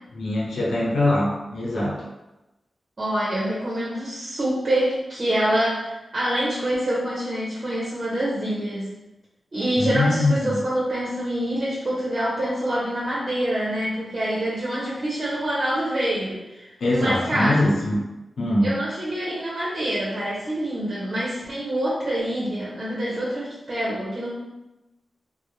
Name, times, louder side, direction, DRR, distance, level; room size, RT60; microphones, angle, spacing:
voice 1, 0.1-2.0 9.8-10.6 16.8-18.0 18.4-18.8, left 1 dB, 85° left, -5 dB, 0.8 m, -22 dB
voice 2, 3.0-8.9 9.5-17.6 18.6-24.3, right 1 dB, 50° right, -7 dB, 0.7 m, -26 dB
2.4 x 2.0 x 3.1 m, 0.99 s
cardioid pair, 55°, 0 cm